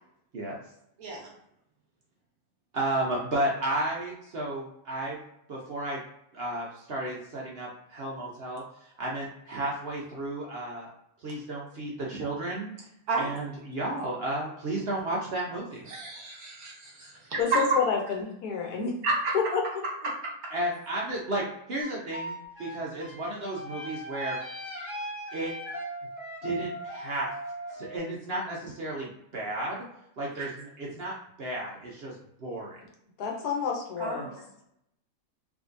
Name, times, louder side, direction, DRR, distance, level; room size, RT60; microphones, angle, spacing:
voice 1, 1.0-1.3 13.1-13.4 15.9-17.6 19.0-19.3 20.0-20.3 30.4-30.5 34.0-34.4, right 3 dB, 70° right, -2 dB, 1.5 m, -31 dB
voice 2, 2.7-5.2 5.5-6.0 6.3-10.9 11.2-12.7 13.2-15.9 20.5-22.3 22.6-24.4 25.3-25.5 26.4-27.3 27.7-29.8 30.2-32.1 32.4-32.8, right 1 dB, 55° right, -3 dB, 0.7 m, -33 dB
voice 3, 17.4-18.9 19.3-19.6 33.2-34.3, left 6 dB, 80° left, 1 dB, 1.3 m, -28 dB
sound 1, 21.8-28.0, right 1 dB, 10° right, 1.1 m, -39 dB
3.5 x 2.9 x 2.5 m, 0.77 s
omnidirectional pair, 1.6 m